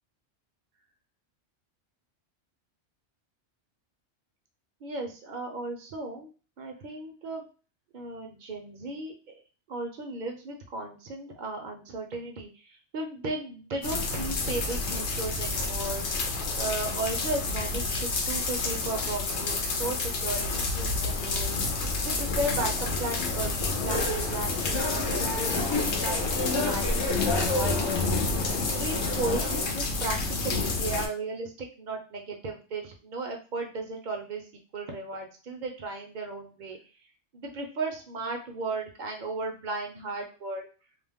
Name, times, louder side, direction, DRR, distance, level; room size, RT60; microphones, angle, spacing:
voice 1, 4.8-6.3 6.6-7.4 7.9-9.3 9.7-16.1 16.6-21.6 22.0-28.1 28.7-34.4 34.7-36.8 37.3-40.7, right 2 dB, 55° right, 2 dB, 0.6 m, -35 dB
sound 1, 13.8-31.1, left 3 dB, 75° left, 0.9 m, -29 dB
sound 2, 23.9-29.6, left 1 dB, 40° left, 0.4 m, -32 dB
2.4 x 2.0 x 3.4 m, 0.37 s
omnidirectional pair, 1.2 m